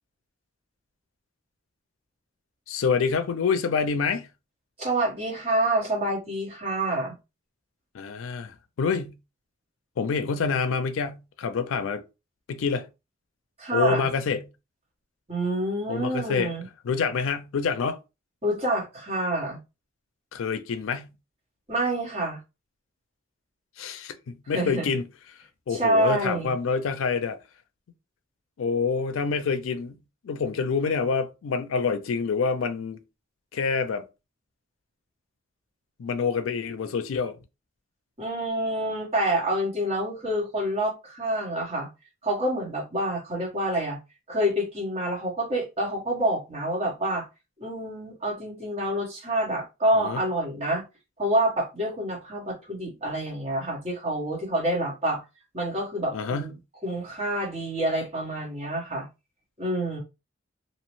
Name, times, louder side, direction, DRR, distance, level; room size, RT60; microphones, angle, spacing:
voice 1, 2.7-4.3 7.9-9.2 10.0-12.0 12.5-12.9 13.7-14.5 15.9-16.5 16.8-18.0 20.3-21.1 23.8-25.1 25.7-27.4 28.6-30.0 30.2-33.0 33.5-34.0 36.0-37.4 50.0-50.2 56.1-56.5, left 5 dB, 85° left, 0.4 m, -27 dB
voice 2, 4.8-7.1 13.6-14.1 15.3-16.7 18.4-19.6 21.7-22.4 24.5-24.9 25.7-26.5 38.2-41.9 42.2-44.0 44.3-47.2 47.6-50.8 51.2-55.2 55.5-56.5 56.8-59.1 59.6-60.0, right 1 dB, 30° right, 1.1 m, -27 dB
2.7 x 2.0 x 3.0 m
head